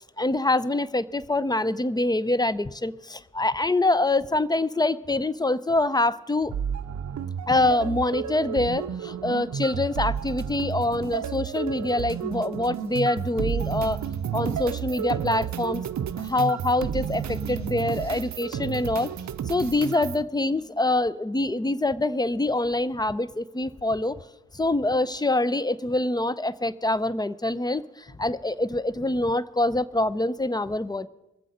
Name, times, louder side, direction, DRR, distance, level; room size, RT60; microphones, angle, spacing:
voice 1, 0.0-6.5 7.5-15.8 16.2-19.1 19.5-24.2 24.5-31.1, left 2 dB, 10° left, 18 dB, 0.5 m, -25 dB
sound 1, 6.5-20.2, right 8 dB, 55° right, 0.6 m, -31 dB
21.5 x 7.6 x 5.1 m, 0.95 s
supercardioid pair, 45°, 34 cm